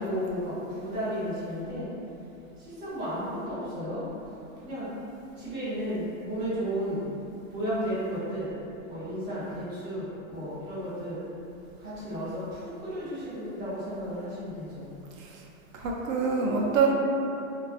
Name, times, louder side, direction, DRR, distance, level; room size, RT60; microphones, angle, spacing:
voice 1, 0.0-1.9 2.8-4.1 4.6-4.9 5.4-7.0 7.5-8.5 8.9-11.2 11.8-12.4 12.8-14.8 16.8-16.9, equal, 15° right, -14 dB, 0.3 m, -33 dB
voice 2, 15.7-16.9, right 5 dB, 70° right, -1 dB, 0.6 m, -26 dB
2.5 x 2.3 x 2.3 m, 2.7 s
supercardioid pair, 155°, 42 cm